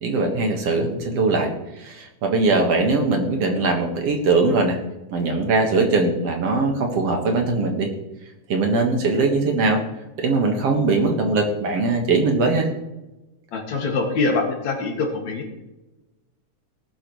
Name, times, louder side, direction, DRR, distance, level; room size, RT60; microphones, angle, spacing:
voice 1, 0.0-1.5 1.8-4.8 5.1-7.9 8.5-9.8 10.2-12.7, right 3 dB, 60° right, 3 dB, 2.4 m, -21 dB
voice 2, 13.5-15.5, left 3 dB, 65° left, 1 dB, 3.3 m, -24 dB
19.0 x 10.0 x 3.1 m, 1.0 s
omnidirectional pair, 3.5 m